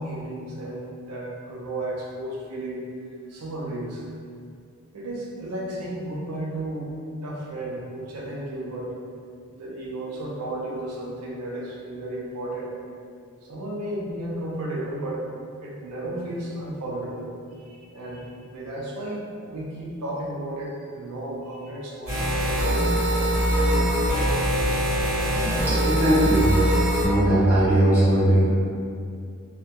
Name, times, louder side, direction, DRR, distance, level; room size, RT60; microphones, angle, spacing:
voice 1, 0.0-2.8 3.3-4.0 4.9-6.9 7.2-9.0 9.5-12.7 13.4-15.2 15.6-17.3 17.6-22.2, right 1 dB, 90° right, -4 dB, 0.4 m, -33 dB
sound 1, 22.1-27.1, right 1 dB, 40° right, 1.2 m, -22 dB
voice 2, 25.7-26.5 27.0-28.5, right 1 dB, 10° right, -14 dB, 0.9 m, -19 dB
2.2 x 2.1 x 2.7 m, 2.4 s
head